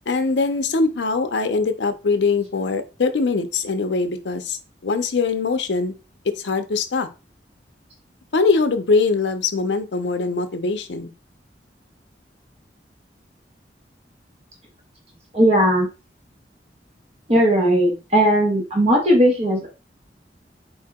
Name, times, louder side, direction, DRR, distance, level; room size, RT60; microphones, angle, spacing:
voice 1, 0.1-4.6 4.8-5.9 6.4-7.1 8.3-11.1, left 4 dB, 85° left, 8 dB, 0.6 m, -22 dB
voice 2, 15.3-15.9 17.3-19.7, equal, 35° right, -1 dB, 1.3 m, -17 dB
4.4 x 2.8 x 3.5 m, 0.30 s
head